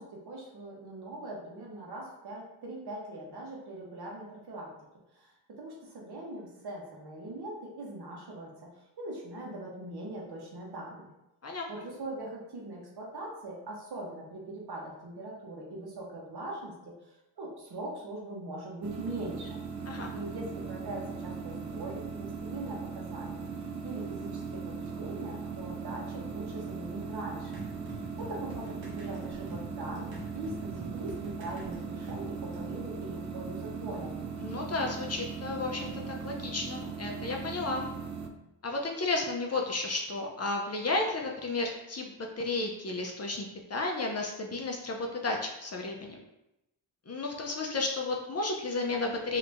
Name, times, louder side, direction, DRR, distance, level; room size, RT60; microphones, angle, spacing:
voice 1, 0.0-4.7 5.1-11.1 11.7-16.9 17.4-19.6 20.1-23.5 23.8-27.6 28.1-34.2, right 1 dB, 60° right, -2 dB, 1.1 m, -41 dB
voice 2, 11.4-11.9 19.9-20.1 34.4-37.9 38.6-46.2 47.1-49.4, left 3 dB, 35° left, 1 dB, 0.6 m, -33 dB
sound 1, 18.8-38.3, right 5 dB, 40° right, 0.4 m, -39 dB
sound 2, 27.5-32.7, right 1 dB, 80° right, 1.1 m, -47 dB
2.9 x 2.7 x 3.4 m, 0.90 s
cardioid pair, 65°, 44 cm